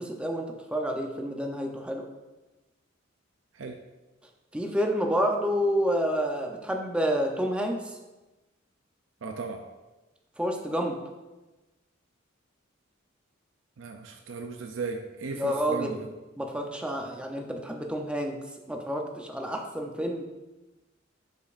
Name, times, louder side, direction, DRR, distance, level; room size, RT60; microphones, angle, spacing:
voice 1, 0.0-2.1 4.5-8.0 10.4-11.0 15.3-16.0 16.4-18.4 18.7-20.2, equal, 5° right, 2 dB, 0.6 m, -29 dB
voice 2, 9.2-9.6 13.8-16.0, right 4 dB, 70° right, 4 dB, 0.5 m, -36 dB
11.5 x 5.1 x 2.5 m, 1.1 s
head